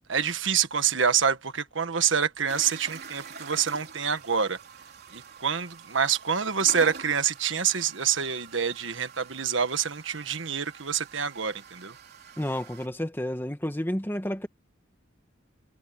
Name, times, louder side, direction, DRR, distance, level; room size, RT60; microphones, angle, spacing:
voice 1, 0.1-4.6 5.1-11.9, right 7 dB, 70° right, 1.5 m, -27 dB
sound 1, 2.5-12.9, right 5 dB, 55° right, 3.8 m, -46 dB
voice 2, 12.4-14.5, left 1 dB, 10° left, 1.7 m, -30 dB
head